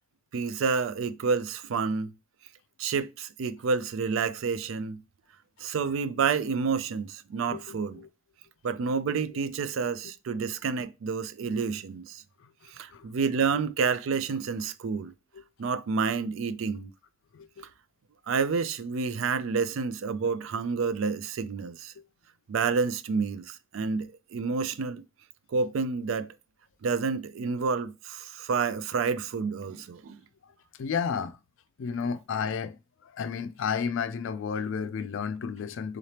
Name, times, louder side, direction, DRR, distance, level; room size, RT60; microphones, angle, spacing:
voice 1, 0.3-2.1 2.8-5.0 5.6-8.0 8.6-12.2 12.7-15.1 15.6-16.9 18.3-21.9 22.5-25.0 25.5-26.3 26.8-30.2 32.0-32.1, right 5 dB, 70° right, 0.4 m, -29 dB
voice 2, 7.5-8.1 12.9-13.1 17.3-17.6 22.0-22.1 30.8-31.4 31.8-32.8 33.1-36.0, left 6 dB, 65° left, 0.4 m, -32 dB
3.8 x 3.3 x 2.8 m
head